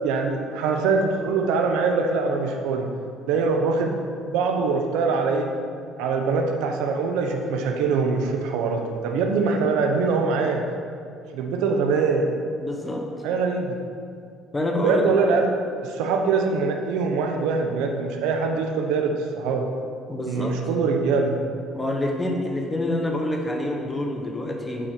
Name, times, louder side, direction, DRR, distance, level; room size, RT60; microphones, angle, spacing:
voice 1, 0.0-2.9 3.3-5.5 6.0-10.7 11.3-12.3 13.2-13.8 14.8-15.5 15.8-19.7 20.3-21.4, right 4 dB, 90° right, 3 dB, 0.8 m, -23 dB
voice 2, 12.6-13.1 14.5-15.2 20.1-20.6 21.7-24.9, left 1 dB, 15° left, 2 dB, 1.0 m, -27 dB
7.4 x 4.4 x 6.6 m, 2.3 s
cardioid pair, 125°, 0 cm